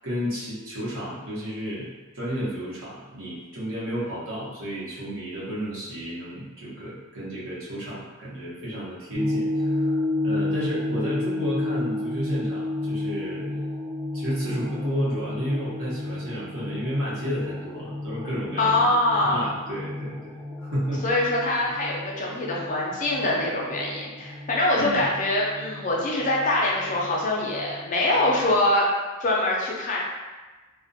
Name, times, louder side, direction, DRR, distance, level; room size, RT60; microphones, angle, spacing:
voice 1, 0.0-13.8 14.1-18.8 19.3-21.0 24.8-25.1, equal, 80° right, -8 dB, 0.9 m, -32 dB
sound 1, 9.1-28.6, left 2 dB, 35° right, 1.2 m, -32 dB
voice 2, 18.6-19.5 21.0-28.9 29.2-30.0, left 1 dB, 35° left, -4 dB, 0.4 m, -24 dB
2.4 x 2.1 x 2.5 m, 1.2 s
head